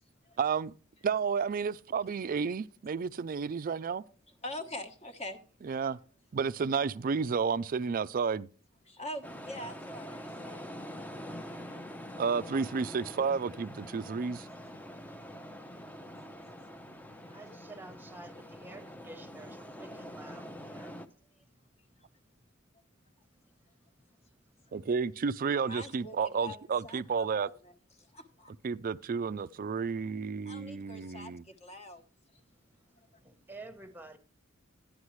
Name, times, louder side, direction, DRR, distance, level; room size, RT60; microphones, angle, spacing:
voice 1, 0.4-0.7 1.0-4.0 5.6-6.0 6.3-8.5 12.2-14.5 24.7-27.5 28.6-31.4, right 5 dB, 45° right, 0.4 m, -31 dB
voice 2, 4.4-5.4 5.7-5.8 8.9-10.6 17.3-17.4 25.6-28.5 30.4-32.0 33.0-33.1, left 1 dB, 35° left, 1.1 m, -44 dB
sound 1, 9.2-21.1, equal, 10° left, 0.6 m, -45 dB
voice 3, 17.3-20.9 33.2-34.2, right 2 dB, 10° right, 1.0 m, -50 dB
11.5 x 10.0 x 3.1 m
head